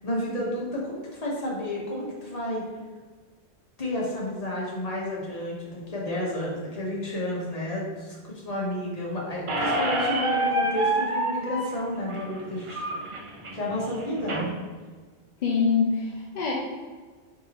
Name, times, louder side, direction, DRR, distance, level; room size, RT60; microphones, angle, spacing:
voice 1, 0.0-2.6 3.8-12.8 13.5-14.5, left 1 dB, 35° left, -4 dB, 1.1 m, -31 dB
Squeak, 9.5-14.5, right 1 dB, 50° right, 0.4 m, -28 dB
voice 2, 15.4-16.5, left 5 dB, 50° left, -4 dB, 0.6 m, -24 dB
4.6 x 3.6 x 2.9 m, 1.4 s
omnidirectional pair, 1.2 m